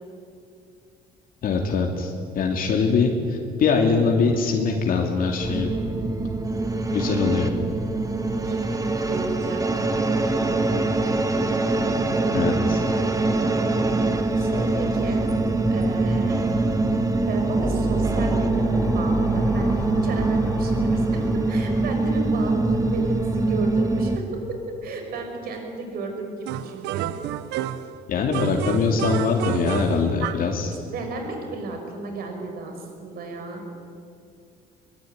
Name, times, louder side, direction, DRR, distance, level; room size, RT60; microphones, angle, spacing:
voice 1, 1.4-5.8 6.9-7.5 12.3-12.8 28.1-30.7, left 4 dB, 55° left, 1 dB, 2.8 m, -22 dB
sound 1, 5.4-24.2, right 2 dB, 20° right, 1.8 m, -23 dB
voice 2, 9.1-9.6 10.3-10.6 14.3-15.3 15.7-16.4 17.3-18.7 18.9-24.2 24.8-27.1 30.8-33.6, right 3 dB, 65° right, 4 dB, 5.8 m, -33 dB
sound 2, 17.6-24.0, right 1 dB, 10° left, 3.5 m, -32 dB
sound 3, 26.5-28.0 28.3-30.5, right 11 dB, 90° right, 1.0 m, -29 dB
22.5 x 21.0 x 9.5 m, 2.5 s
cardioid pair, 110°, 17 cm